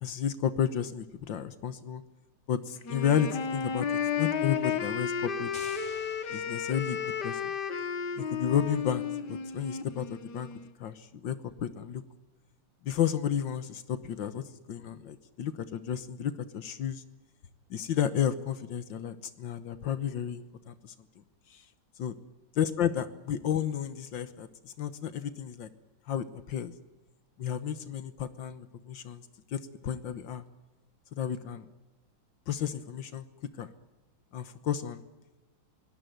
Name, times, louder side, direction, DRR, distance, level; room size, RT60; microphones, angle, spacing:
voice 1, 0.0-2.0 2.5-3.9 4.2-5.5 6.3-7.5 8.2-10.5 10.8-12.0 12.8-17.0 17.7-21.0 21.5-21.7 22.0-22.1 22.6-25.7 26.1-26.7 27.4-30.4 31.1-31.7 32.5-33.3 33.6-33.7 34.3-35.0, left 9 dB, 80° left, 12 dB, 1.8 m, -32 dB
Wind instrument woodwind instrument, 2.8-10.7, left 7 dB, 65° left, 2.1 m, -33 dB
sound 1, 5.5-7.4, left 1 dB, 25° left, 5.3 m, -50 dB
23.0 x 19.0 x 9.3 m, 1.1 s
omnidirectional pair, 2.0 m